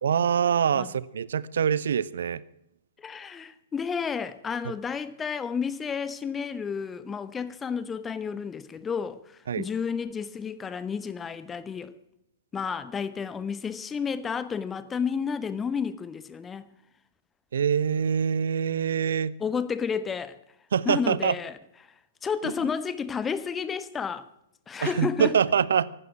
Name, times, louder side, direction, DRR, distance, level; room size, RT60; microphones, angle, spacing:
voice 1, 0.0-2.4 9.5-9.6 17.5-19.3 20.7-21.3 24.8-25.9, right 7 dB, 60° right, 0.7 m, -24 dB
voice 2, 3.0-11.9 12.5-16.7 19.4-20.4 20.8-21.6 22.2-24.3 24.7-25.4, left 6 dB, 15° left, 1.0 m, -31 dB
15.0 x 12.5 x 6.0 m
figure-of-eight pair, 110°, 0 cm